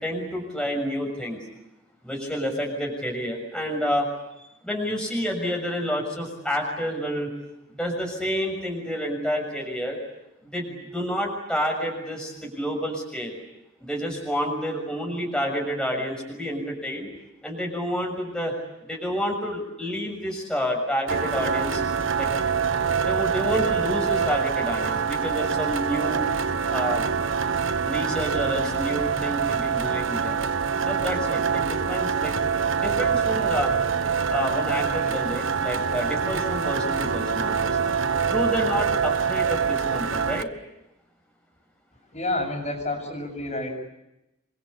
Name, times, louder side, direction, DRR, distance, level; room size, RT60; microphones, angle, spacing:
voice 1, 0.0-1.4 2.0-4.1 4.6-7.3 7.7-10.0 10.4-13.4 13.8-17.1 17.4-18.5 18.8-21.8 22.2-22.3 23.0-26.2 26.7-27.0 27.8-30.4 30.9-32.3 32.8-33.7 34.3-38.0 38.3-40.5, equal, 5° left, 0 dB, 6.7 m, -29 dB
sound 1, 21.1-40.4, right 6 dB, 90° right, 1.2 m, -25 dB
voice 2, 42.1-43.7, left 2 dB, 35° left, 2 dB, 7.3 m, -29 dB
28.5 x 23.5 x 8.4 m, 0.90 s
head